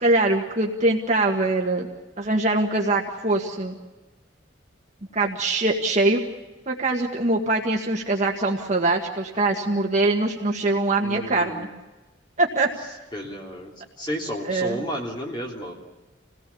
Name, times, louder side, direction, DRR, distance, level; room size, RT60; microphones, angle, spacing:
voice 1, 0.0-1.9 2.2-3.8 5.1-6.2 6.7-11.7 12.4-12.7 14.4-14.8, right 2 dB, 40° right, 0 dB, 1.8 m, -23 dB
voice 2, 11.0-11.7 13.1-13.7 14.0-15.7, equal, 25° left, -1 dB, 3.1 m, -32 dB
28.0 x 18.0 x 7.1 m, 1.2 s
head